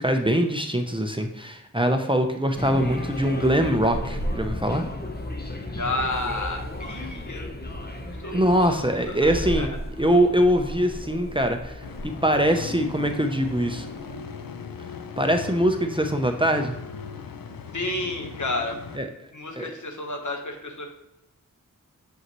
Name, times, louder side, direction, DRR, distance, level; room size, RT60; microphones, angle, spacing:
voice 1, 0.0-4.9 8.3-13.9 15.2-16.7 18.9-19.1 19.6-19.7, equal, 15° right, 4 dB, 0.7 m, -23 dB
sound 1, 2.6-14.1, left 1 dB, 30° left, 1.0 m, -34 dB
voice 2, 5.7-9.7 17.7-18.8 19.3-20.9, left 2 dB, 60° left, 2 dB, 1.3 m, -32 dB
sound 2, 11.8-19.0, left 5 dB, 85° left, 0.6 m, -38 dB
7.3 x 5.4 x 3.1 m, 0.88 s
wide cardioid pair, 55°, 33 cm